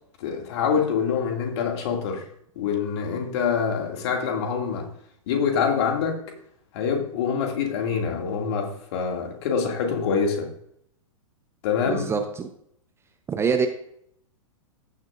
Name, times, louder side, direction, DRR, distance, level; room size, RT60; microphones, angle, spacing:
voice 1, 0.2-2.2 2.6-4.9 5.3-6.2 6.7-10.5 11.6-12.1, left 6 dB, 50° left, 2 dB, 2.3 m, -25 dB
voice 2, 11.9-12.5 13.3-13.7, right 5 dB, 15° right, 6 dB, 0.8 m, -24 dB
16.0 x 6.6 x 2.5 m, 0.69 s
figure-of-eight pair, 105°, 18 cm